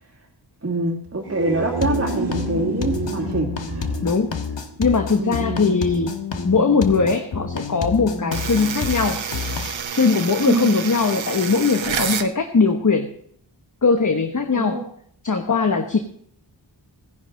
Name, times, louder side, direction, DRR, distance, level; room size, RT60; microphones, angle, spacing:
voice 1, 0.6-3.5 5.1-5.7 10.5-10.8 14.5-14.9, right 2 dB, 30° right, -2 dB, 1.9 m, -25 dB
sound 1, 1.1-5.3, right 5 dB, 60° right, 1.4 m, -30 dB
sound 2, 1.8-9.8, left 5 dB, 70° left, 1.3 m, -29 dB
voice 2, 4.0-4.4 4.8-6.1 6.4-9.2 9.9-13.1 13.8-14.8 15.2-16.0, left 4 dB, 40° left, 5 dB, 1.1 m, -20 dB
sound 3, 8.3-12.3, right 7 dB, 85° right, 0.9 m, -29 dB
17.0 x 10.5 x 3.8 m, 0.64 s
wide cardioid pair, 75°, 45 cm